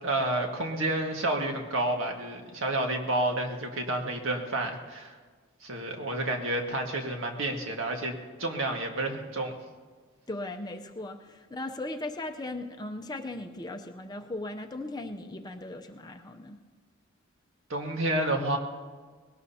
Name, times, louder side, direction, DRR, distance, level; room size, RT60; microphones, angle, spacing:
voice 1, 0.0-5.1 5.6-9.6 17.7-18.6, right 1 dB, 70° right, 2 dB, 1.8 m, -30 dB
voice 2, 10.3-16.6, left 2 dB, 20° left, 5 dB, 0.6 m, -38 dB
20.5 x 17.5 x 2.8 m, 1.5 s
head